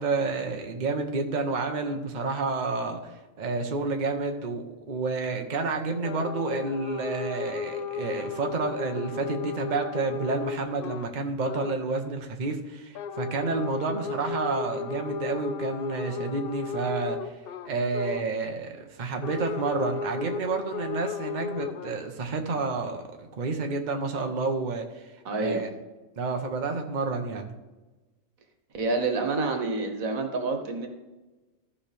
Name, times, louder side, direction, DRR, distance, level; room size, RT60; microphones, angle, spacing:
voice 1, 0.0-3.1 3.4-17.2 17.6-25.0 25.4-25.7 26.2-27.5, right 3 dB, 40° right, 4 dB, 0.9 m, -30 dB
sound 1, 6.0-11.1 11.4-11.8 12.9-18.3 19.2-21.9, left 5 dB, 65° left, 0.6 m, -34 dB
voice 2, 25.2-25.6 28.7-30.9, right 3 dB, 85° right, 5 dB, 1.6 m, -28 dB
14.5 x 5.6 x 3.4 m, 1.2 s
omnidirectional pair, 1.4 m